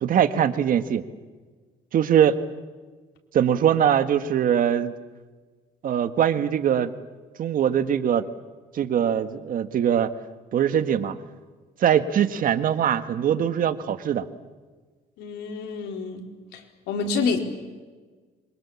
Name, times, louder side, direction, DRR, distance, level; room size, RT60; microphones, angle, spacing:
voice 1, 0.0-1.0 1.9-2.4 3.3-4.9 5.8-6.9 7.4-8.3 8.7-10.1 10.5-11.1 11.8-14.3, right 9 dB, 55° right, 10 dB, 1.6 m, -22 dB
voice 2, 15.2-16.2 16.5-16.6 16.9-17.4, left 4 dB, 85° left, 3 dB, 4.2 m, -27 dB
26.5 x 24.0 x 7.2 m, 1.4 s
cardioid pair, 110°, 17 cm